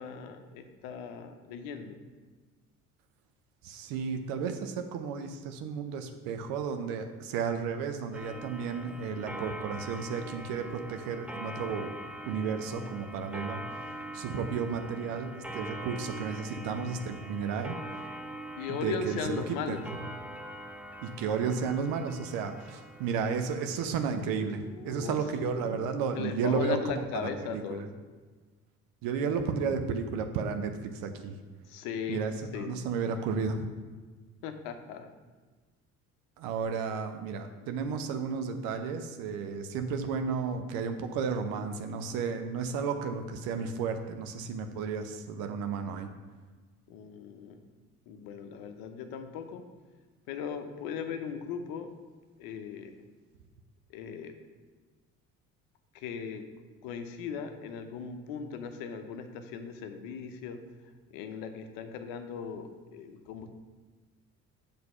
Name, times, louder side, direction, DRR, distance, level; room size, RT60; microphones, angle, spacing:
voice 1, 0.0-2.0 18.6-19.8 24.4-25.2 25.6-25.9 26.1-27.8 31.7-32.2 32.5-32.7 34.4-35.1 46.9-47.6 48.1-49.6 50.3-51.9 52.4-52.9 53.9-54.4 55.9-56.5 56.8-60.6 61.1-63.5, left 7 dB, 55° left, 8 dB, 0.8 m, -38 dB
voice 2, 3.6-11.9 12.3-18.0 18.7-19.4 19.7-19.8 21.0-27.8 29.0-31.3 32.1-33.7 36.4-46.1, right 5 dB, 50° right, 7 dB, 0.7 m, -33 dB
Clock, 8.1-24.2, right 1 dB, 5° right, 0.4 m, -43 dB
7.7 x 3.5 x 5.6 m, 1.4 s
figure-of-eight pair, 55°, 43 cm